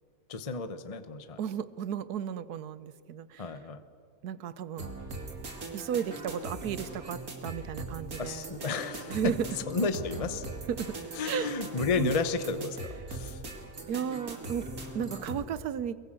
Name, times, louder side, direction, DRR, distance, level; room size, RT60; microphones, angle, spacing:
voice 1, 0.3-1.4 3.4-3.8 8.2-9.3 9.7-10.5 11.2-13.4, left 4 dB, 25° left, 10 dB, 0.9 m, -32 dB
voice 2, 1.4-3.5 4.2-4.9 5.7-8.5 9.1-9.5 10.7-11.0 11.2-11.5 12.0-12.1 13.9-14.7 14.9-16.0, right 8 dB, 90° right, 16 dB, 1.4 m, -34 dB
sound 1, 4.8-15.4, right 2 dB, 70° right, 3.1 m, -41 dB
23.5 x 22.0 x 7.6 m, 2.2 s
omnidirectional pair, 1.6 m